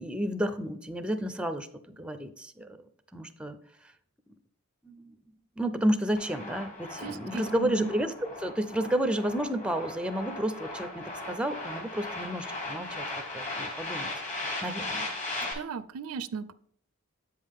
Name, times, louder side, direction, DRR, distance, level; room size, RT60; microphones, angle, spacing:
voice 1, 0.0-1.7 2.0-2.8 3.1-3.6 3.8-3.9 4.8-5.1 5.6-13.0 13.3-15.1, right 1 dB, 5° right, 9 dB, 0.4 m, -31 dB
sound 1, 6.2-15.5, left 2 dB, 35° left, 1.9 m, -38 dB
voice 2, 7.0-7.9 15.5-16.5, right 6 dB, 80° right, 16 dB, 0.4 m, -36 dB
8.0 x 5.5 x 3.5 m, 0.66 s
head